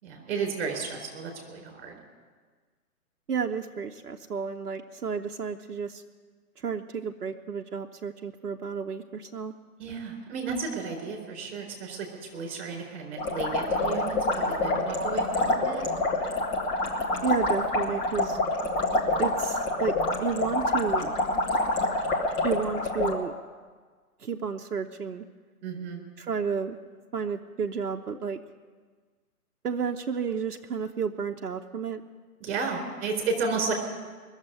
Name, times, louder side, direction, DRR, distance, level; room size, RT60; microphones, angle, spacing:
voice 1, 0.0-2.0 9.8-14.2 14.5-15.9 25.6-26.0 32.4-33.7, right 4 dB, 35° right, 1 dB, 4.4 m, -33 dB
voice 2, 3.3-6.0 6.6-9.5 17.2-18.4 19.2-21.1 22.4-23.3 24.2-25.2 26.2-26.8 27.1-28.4 29.6-32.0, right 6 dB, 75° right, 3 dB, 0.9 m, -31 dB
sound 1, 13.2-23.1, left 2 dB, 10° left, 1.0 m, -27 dB
20.5 x 7.4 x 9.3 m, 1.5 s
figure-of-eight pair, 130°, 46 cm